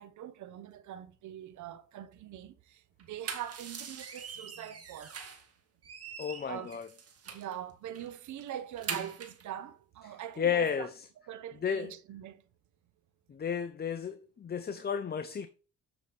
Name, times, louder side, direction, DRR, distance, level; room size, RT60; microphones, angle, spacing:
voice 1, 0.0-5.2 6.5-6.7 7.3-10.9 11.3-12.4, right 11 dB, 75° right, 1.0 m, -43 dB
sound 1, 3.0-5.5 5.8-7.5 7.9-8.1 8.4-9.4, right 6 dB, 50° right, 2.0 m, -42 dB
voice 2, 6.2-6.9 10.4-10.9 11.6-11.9 13.3-15.5, left 7 dB, 30° left, 0.7 m, -32 dB
8.0 x 6.2 x 3.4 m
cardioid pair, 90°, 30 cm